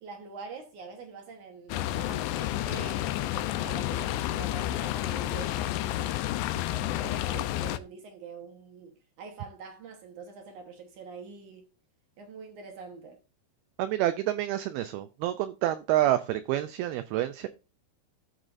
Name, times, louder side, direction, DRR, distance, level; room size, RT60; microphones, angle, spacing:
voice 1, 0.0-6.2 6.7-11.7 12.2-13.2, right 5 dB, 65° right, 2.1 m, -45 dB
sound 1, 1.7-7.8, left 14 dB, 85° left, 2.9 m, -30 dB
voice 2, 13.8-17.5, right 13 dB, 85° right, 2.2 m, -28 dB
14.0 x 6.2 x 2.6 m
omnidirectional pair, 5.1 m